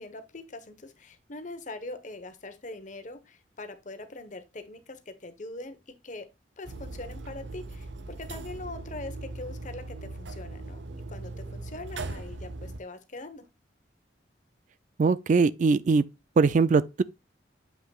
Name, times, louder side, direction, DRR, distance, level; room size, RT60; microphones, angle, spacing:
voice 1, 0.0-5.8 6.0-6.3 6.6-10.8 11.1-13.4, left 2 dB, 45° left, 1.1 m, -42 dB
sound 1, 6.6-12.8, right 2 dB, 85° right, 0.8 m, -39 dB
voice 2, 15.0-16.0 16.4-17.0, right 4 dB, 45° right, 0.3 m, -21 dB
7.6 x 5.8 x 2.3 m
head